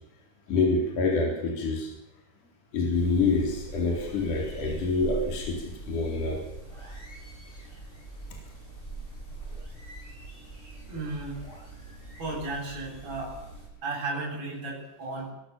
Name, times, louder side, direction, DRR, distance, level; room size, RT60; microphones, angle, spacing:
voice 1, 0.5-1.9 2.7-6.4, left 3 dB, 45° left, 0 dB, 5.2 m, -26 dB
sound 1, 2.9-13.7, right 2 dB, 10° left, 7.8 m, -42 dB
voice 2, 10.9-11.4 11.8-11.9 12.2-13.4 13.8-15.3, right 3 dB, 35° right, -3 dB, 8.9 m, -34 dB
21.5 x 16.5 x 7.3 m, 0.90 s
omnidirectional pair, 5.2 m